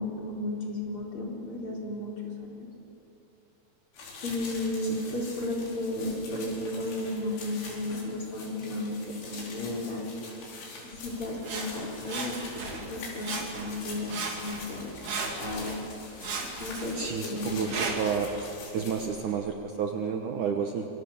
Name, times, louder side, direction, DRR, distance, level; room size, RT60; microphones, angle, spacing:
voice 1, 0.0-2.1 2.4-2.7 4.2-10.1 10.8-14.9 15.4-15.7 16.6-17.8, left 1 dB, 35° left, -2 dB, 4.6 m, -34 dB
sound 1, 3.9-19.1, left 3 dB, 85° left, 6.6 m, -44 dB
Sawing, 11.4-12.9 13.2-13.8 14.1-15.8 16.2-18.2 18.9-19.0, right 4 dB, 50° right, 3.8 m, -36 dB
voice 2, 16.9-18.5 18.7-20.9, right 6 dB, 65° right, 3 dB, 2.3 m, -30 dB
27.0 x 25.5 x 7.2 m, 3.0 s
omnidirectional pair, 4.7 m